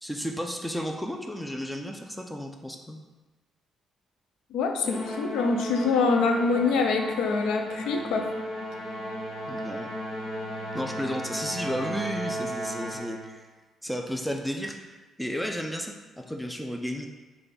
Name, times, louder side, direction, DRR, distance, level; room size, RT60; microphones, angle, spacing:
voice 1, 0.0-3.0 9.5-9.9 10.7-13.5 13.8-17.1, equal, 5° left, 3 dB, 0.3 m, -33 dB
voice 2, 4.5-8.3, left 4 dB, 85° left, 4 dB, 0.4 m, -25 dB
Musical instrument, 4.8-13.3, equal, 70° left, 0.9 m, -35 dB
3.3 x 2.2 x 4.0 m, 1.1 s
cardioid pair, 90°, 0 cm